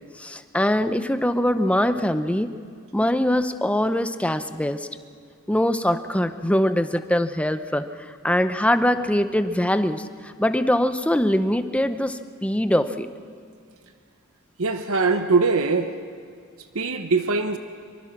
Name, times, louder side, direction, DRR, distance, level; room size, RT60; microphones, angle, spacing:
voice 1, 0.2-2.5 2.9-4.9 5.5-13.1, left 1 dB, 5° left, 10 dB, 0.7 m, -23 dB
voice 2, 14.6-15.9 16.7-17.6, right 4 dB, 65° right, 8 dB, 1.0 m, -22 dB
24.5 x 23.5 x 6.1 m, 2.2 s
head